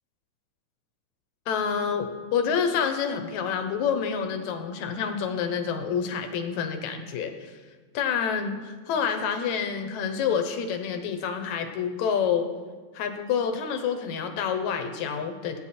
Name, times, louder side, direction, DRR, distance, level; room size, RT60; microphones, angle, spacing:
voice 1, 1.5-7.6 7.9-12.5 12.9-15.6, left 7 dB, 70° left, 6 dB, 2.2 m, -28 dB
16.0 x 9.1 x 4.3 m, 1.4 s
omnidirectional pair, 3.6 m